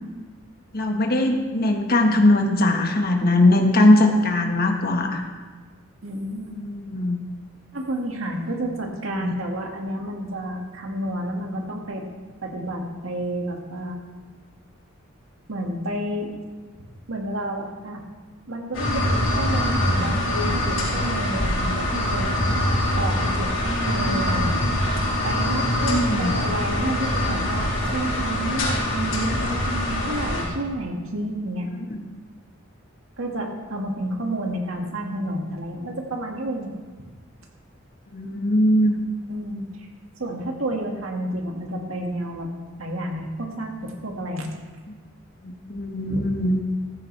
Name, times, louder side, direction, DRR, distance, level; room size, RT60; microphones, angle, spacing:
voice 1, 0.7-5.2 6.5-7.2 9.2-9.3 25.9-26.4 38.1-39.0 45.4-46.6, left 1 dB, 50° left, 3 dB, 1.4 m, -20 dB
voice 2, 6.0-6.6 7.7-12.1 12.4-14.0 15.5-16.4 17.1-18.0 18.5-22.4 23.0-24.5 25.2-31.7 33.2-36.7 39.3-39.7 40.2-42.5 42.8-44.5 46.1-46.3, right 1 dB, 80° right, 1 dB, 2.0 m, -30 dB
sound 1, 18.7-30.4, left 1 dB, 70° left, 4.3 m, -24 dB
14.5 x 14.0 x 3.4 m, 1.4 s
head